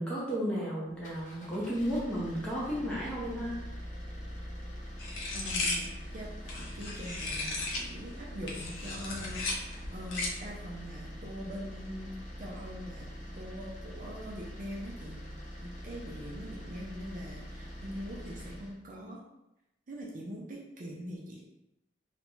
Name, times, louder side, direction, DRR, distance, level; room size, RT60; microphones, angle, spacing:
voice 1, 0.0-3.6, equal, 5° left, -7 dB, 0.7 m, -33 dB
sound 1, 0.9-18.8, equal, 40° left, 0.5 m, -44 dB
sound 2, 5.0-7.9 8.3-10.5, left 2 dB, 90° left, 0.5 m, -35 dB
voice 2, 5.3-12.1 12.4-13.1 13.3-15.2 15.6-19.2 19.9-21.4, equal, 45° right, -3 dB, 0.4 m, -43 dB
2.5 x 2.1 x 3.0 m, 0.89 s
head